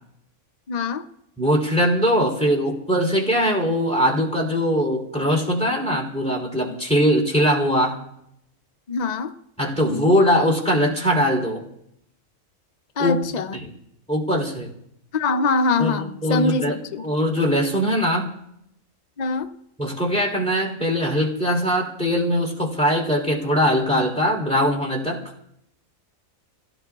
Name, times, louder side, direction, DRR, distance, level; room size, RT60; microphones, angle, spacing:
voice 1, 0.7-1.1 8.9-9.3 13.0-13.7 15.1-17.0 19.2-19.5, left 3 dB, 45° left, 7 dB, 0.6 m, -23 dB
voice 2, 1.4-8.0 9.6-11.6 13.0-13.2 14.1-14.7 15.8-16.8 17.0-18.3 19.8-25.2, equal, 5° left, 0 dB, 3.3 m, -21 dB
29.5 x 17.5 x 2.4 m, 0.77 s
omnidirectional pair, 1.4 m